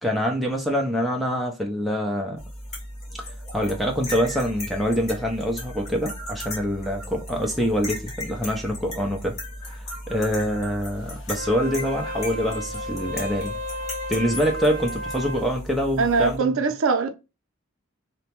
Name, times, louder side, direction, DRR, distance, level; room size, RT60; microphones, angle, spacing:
voice 1, 0.0-2.4 3.5-9.3 9.7-13.6 14.1-16.5, equal, ahead, 0.4 m, -25 dB
sound 1, 2.4-16.4, left 1 dB, 30° left, 1.0 m, -36 dB
Wind instrument woodwind instrument, 11.2-15.5, equal, 65° left, 0.7 m, -34 dB
voice 2, 16.0-17.1, right 4 dB, 75° right, 0.5 m, -22 dB
2.8 x 2.2 x 2.8 m
head